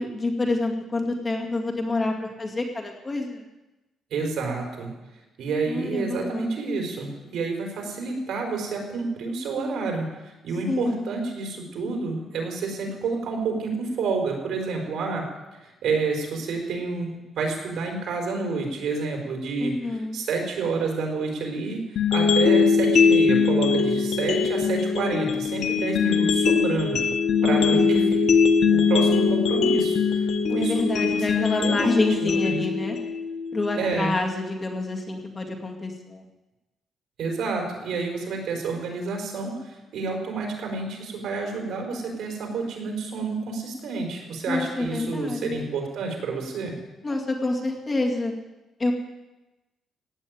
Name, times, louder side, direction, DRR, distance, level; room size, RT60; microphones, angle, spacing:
voice 1, 0.0-3.4 5.7-6.5 10.7-11.0 19.6-20.2 27.4-28.2 30.5-33.0 33.5-36.2 44.5-45.6 47.0-48.3 48.8-48.9, left 2 dB, 25° left, 1 dB, 2.2 m, -27 dB
voice 2, 4.1-4.9 5.4-15.2 15.6-27.0 27.4-28.2 28.7-31.9 32.2-32.6 33.7-34.2 37.2-46.7, right 4 dB, 65° right, 2 dB, 4.6 m, -29 dB
sound 1, 22.0-34.0, left 5 dB, 60° left, 1.4 m, -22 dB
16.0 x 9.1 x 9.4 m, 1.1 s
cardioid pair, 150°, 0 cm